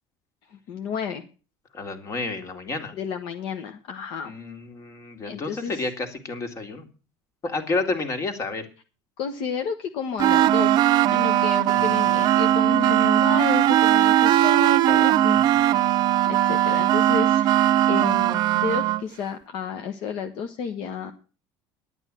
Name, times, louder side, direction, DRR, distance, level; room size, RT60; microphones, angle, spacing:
voice 1, 0.5-1.2 2.9-4.3 5.2-5.9 9.2-16.0 16.3-21.1, left 6 dB, 60° left, 6 dB, 1.2 m, -31 dB
voice 2, 1.7-2.9 4.2-6.9 7.4-8.6 11.7-12.0 15.3-15.9, left 3 dB, 35° left, 8 dB, 2.3 m, -31 dB
sound 1, 10.2-19.0, right 13 dB, 50° right, 0.7 m, -19 dB
11.0 x 8.9 x 7.5 m, 0.36 s
cardioid pair, 140°, 9 cm